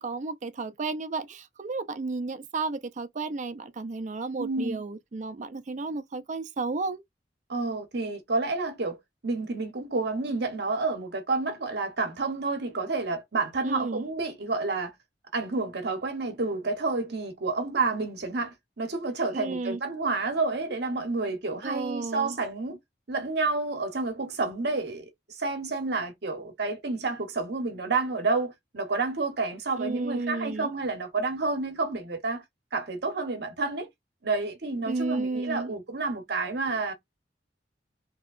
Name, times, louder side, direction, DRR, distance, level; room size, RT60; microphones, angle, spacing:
voice 1, 0.0-7.0 13.6-14.0 19.3-19.8 21.6-22.4 29.8-30.7 34.9-35.7, right 3 dB, 45° right, 0.5 m, -32 dB
voice 2, 4.4-4.8 7.5-9.0 9.2-14.9 15.3-22.8 23.1-25.1 25.4-32.4 32.7-33.9 34.2-36.9, right 3 dB, 65° right, 0.9 m, -29 dB
3.0 x 2.8 x 2.4 m
head